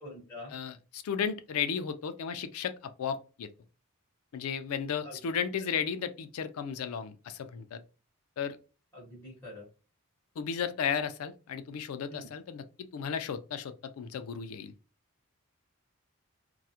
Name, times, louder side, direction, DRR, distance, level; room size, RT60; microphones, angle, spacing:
voice 1, 0.0-0.5 5.0-5.2 8.9-9.6 12.1-12.3, left 1 dB, 10° left, 1.1 m, -45 dB
voice 2, 0.5-3.5 4.3-7.8 8.4-8.6 10.4-14.7, left 7 dB, 75° left, 0.3 m, -34 dB
2.3 x 2.0 x 2.7 m
head